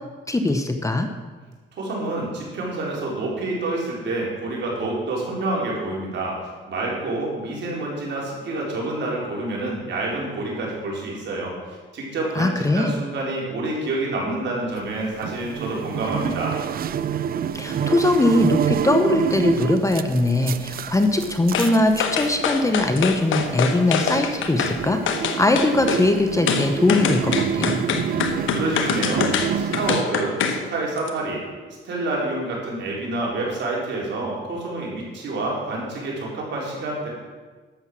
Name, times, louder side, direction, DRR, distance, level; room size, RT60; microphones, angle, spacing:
voice 1, 0.3-1.1 12.3-12.9 17.5-25.0 25.4-27.8, left 2 dB, 15° left, 6 dB, 1.0 m, -21 dB
voice 2, 1.8-6.4 6.7-16.6 28.2-31.4 31.8-37.1, right 2 dB, 65° right, -3 dB, 4.3 m, -28 dB
sound 1, 14.8-30.0, right 8 dB, 50° right, 0.5 m, -28 dB
sound 2, 21.5-21.7 22.0-24.8 25.1-26.0 26.5-30.6 31.0-31.1, left 7 dB, 80° left, 1.2 m, -24 dB
12.0 x 7.6 x 6.2 m, 1.4 s
cardioid pair, 90°, 20 cm